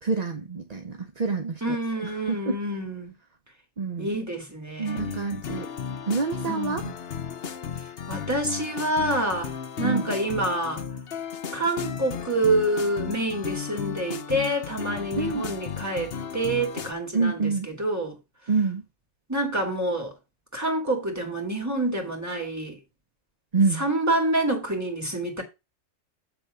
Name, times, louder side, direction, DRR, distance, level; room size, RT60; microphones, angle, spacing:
voice 1, 0.0-1.8 2.0-2.5 3.8-4.1 4.8-5.7 6.1-6.8 9.8-10.1 15.2-15.5 17.1-17.7 18.5-18.8 23.5-23.8, right 4 dB, 40° right, 0.7 m, -27 dB
voice 2, 1.6-3.1 4.0-5.2 6.5-6.9 8.1-9.5 9.8-10.8 11.5-18.2 19.3-20.1 20.5-22.8 23.8-25.4, right 1 dB, 10° right, 2.6 m, -27 dB
sound 1, 4.9-16.9, left 7 dB, 55° left, 0.9 m, -35 dB
7.9 x 3.6 x 6.5 m
omnidirectional pair, 1.4 m